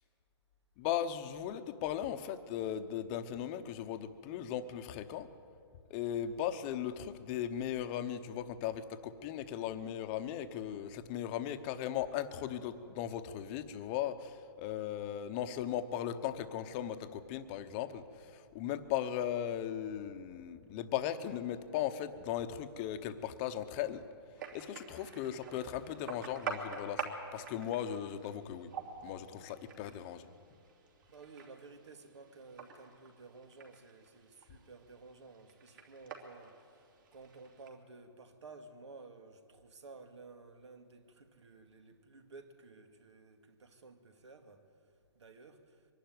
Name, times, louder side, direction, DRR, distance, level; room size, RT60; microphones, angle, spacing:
voice 1, 0.8-5.3 5.9-24.0 24.5-28.7 29.0-30.3, left 10 dB, 25° left, 0.9 m, -37 dB
sound 1, 24.4-37.7, right 5 dB, 50° right, 3.0 m, -47 dB
voice 2, 31.1-36.8 37.1-44.6 45.2-45.8, right 3 dB, 80° right, 2.4 m, -54 dB
23.5 x 12.0 x 9.5 m
hypercardioid pair, 155°, 14 cm